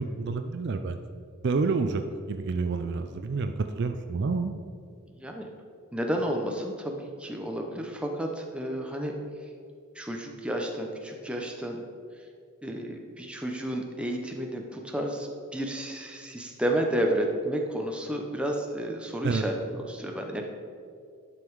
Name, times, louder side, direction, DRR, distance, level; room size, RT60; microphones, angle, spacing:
voice 1, 0.0-4.5 19.2-19.4, right 4 dB, 50° right, 7 dB, 0.4 m, -29 dB
voice 2, 5.1-5.5 5.9-9.1 9.9-11.8 12.6-20.4, right 1 dB, 5° right, 1 dB, 0.7 m, -31 dB
11.0 x 5.5 x 4.7 m, 2.2 s
head